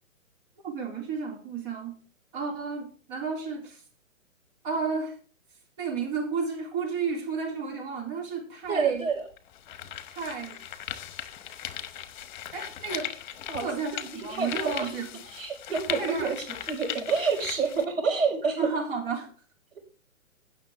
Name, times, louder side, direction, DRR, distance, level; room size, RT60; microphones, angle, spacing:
voice 1, 0.6-1.9 2.3-3.8 4.6-5.2 5.8-9.1 10.1-10.6 12.5-13.1 13.6-15.2 16.0-16.4 18.6-19.3, right 5 dB, 40° right, 1 dB, 3.4 m, -32 dB
sound 1, 8.6-8.7 9.4-17.8, left 10 dB, 35° left, 1.2 m, -38 dB
voice 2, 8.7-9.2 13.5-13.7 14.3-14.9 15.3-18.7, right 5 dB, 70° right, -6 dB, 5.3 m, -28 dB
16.5 x 6.7 x 3.6 m, 0.40 s
figure-of-eight pair, 130°, 41 cm